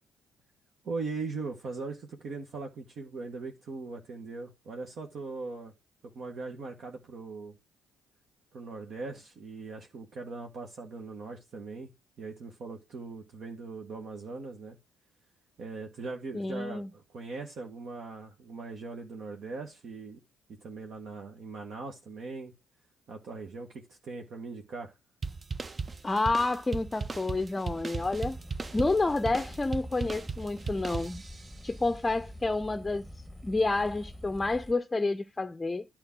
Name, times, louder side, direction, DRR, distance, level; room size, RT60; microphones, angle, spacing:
voice 1, 0.8-5.7 6.1-7.5 8.5-11.9 12.2-14.8 15.6-20.2 20.6-22.5 23.1-24.9, right 4 dB, 60° right, 1.7 m, -40 dB
voice 2, 16.3-16.9 26.0-28.4 28.7-31.2 31.6-33.0 33.4-35.9, left 3 dB, 20° left, 0.6 m, -29 dB
sound 1, 25.2-31.6, right 4 dB, 35° right, 0.8 m, -37 dB
sound 2, 28.0-34.7, left 1 dB, 5° right, 1.5 m, -46 dB
10.5 x 4.5 x 6.2 m
hypercardioid pair, 50°, 0 cm